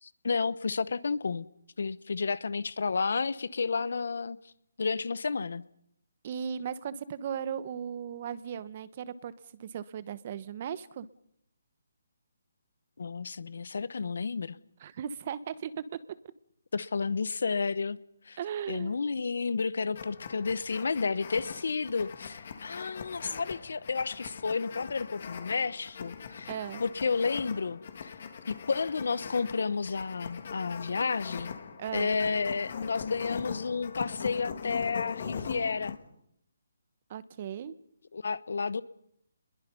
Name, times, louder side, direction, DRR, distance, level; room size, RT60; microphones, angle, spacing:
voice 1, 0.0-1.5 1.8-4.4 4.8-5.6 13.0-14.6 16.7-18.0 18.3-18.4 18.7-26.5 26.8-28.1 28.5-31.6 31.9-36.0 38.1-38.8, left 4 dB, 70° left, 1.0 m, -31 dB
voice 2, 6.2-11.1 14.8-16.0 18.4-18.9 26.5-26.8 31.8-32.1 37.1-37.7, right 8 dB, 40° right, 1.1 m, -37 dB
sound 1, 19.9-36.0, left 6 dB, 50° left, 3.0 m, -41 dB
27.0 x 22.0 x 5.5 m
hypercardioid pair, 155°, 0 cm